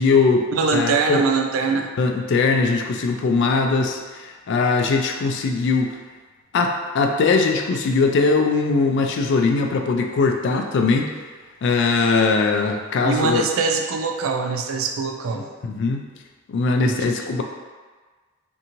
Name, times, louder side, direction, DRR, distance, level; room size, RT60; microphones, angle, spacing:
voice 1, 0.0-1.2 2.0-6.0 6.5-11.1 11.6-13.4 15.3-16.1 16.5-17.4, left 4 dB, 60° left, 3 dB, 0.3 m, -20 dB
voice 2, 0.5-1.9 13.0-15.4 16.8-17.1, right 4 dB, 75° right, 4 dB, 0.3 m, -23 dB
2.6 x 2.6 x 2.8 m, 1.4 s
head